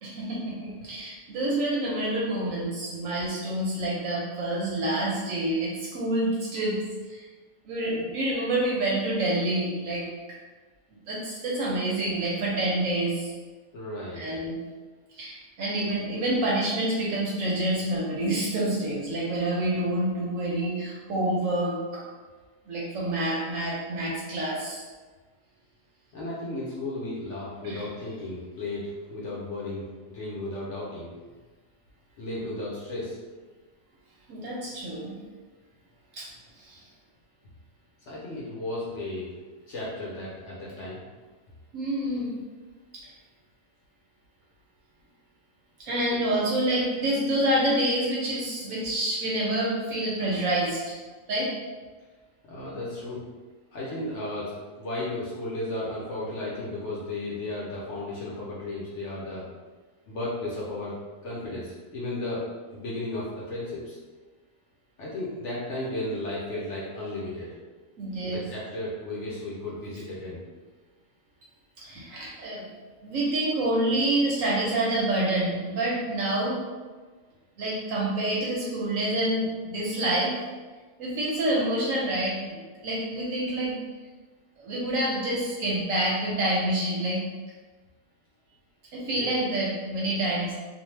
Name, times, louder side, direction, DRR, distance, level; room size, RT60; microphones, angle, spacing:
voice 1, 0.0-6.8 7.1-7.3 7.6-10.0 11.1-13.3 14.2-14.6 15.2-22.1 22.7-24.8 27.6-27.8 34.3-35.1 36.1-36.3 36.6-36.8 41.7-42.3 42.9-43.0 45.8-51.0 51.3-51.5 68.0-68.4 71.8-72.6 73.0-76.7 77.6-80.3 81.0-83.8 84.6-87.2 88.9-90.5, right 1 dB, 70° right, -4 dB, 0.9 m, -27 dB
voice 2, 13.7-14.2 26.1-31.1 32.2-33.2 38.1-39.3 39.7-41.0 46.1-46.2 52.4-53.2 53.7-59.5 60.1-60.9 61.2-62.4 62.7-64.0 65.0-67.5 68.2-70.4 89.1-89.4, left 2 dB, 60° left, -6 dB, 0.8 m, -34 dB
2.6 x 2.2 x 3.1 m, 1.3 s
omnidirectional pair, 1.7 m